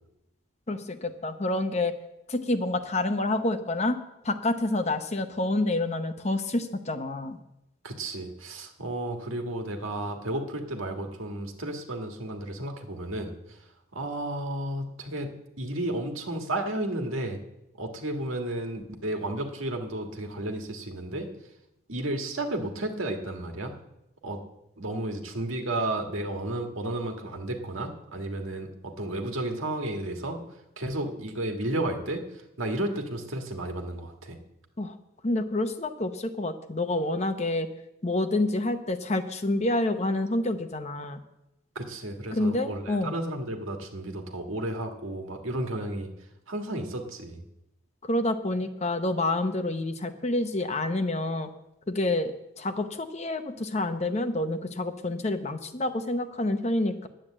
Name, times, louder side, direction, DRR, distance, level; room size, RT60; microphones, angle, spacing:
voice 1, 0.7-1.9 2.3-4.0 4.2-7.4 34.8-34.9 35.2-37.7 38.0-41.2 42.3-43.2 48.0-51.5 51.9-52.3 52.6-57.1, left 2 dB, 35° left, 8 dB, 0.8 m, -28 dB
voice 2, 7.8-13.6 13.9-15.3 15.6-17.4 17.8-21.3 21.9-23.7 24.2-24.4 24.8-30.4 30.8-32.2 32.6-34.4 41.7-46.1 46.5-47.4, right 1 dB, 85° right, 3 dB, 1.6 m, -32 dB
10.5 x 8.8 x 7.4 m, 0.89 s
head